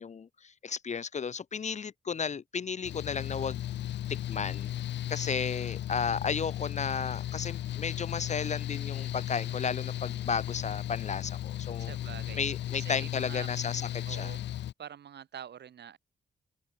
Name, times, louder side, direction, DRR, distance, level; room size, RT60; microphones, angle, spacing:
voice 1, 0.0-3.6 4.1-4.7 5.1-11.9 12.4-14.3, left 6 dB, 40° left, 0.6 m, -34 dB
Mechanical fan, 2.8-14.7, left 12 dB, 75° left, 1.2 m, -35 dB
voice 2, 11.8-12.4 12.7-13.5 14.1-14.4 14.8-16.0, right 9 dB, 70° right, 4.0 m, -45 dB
supercardioid pair, 50°, 18 cm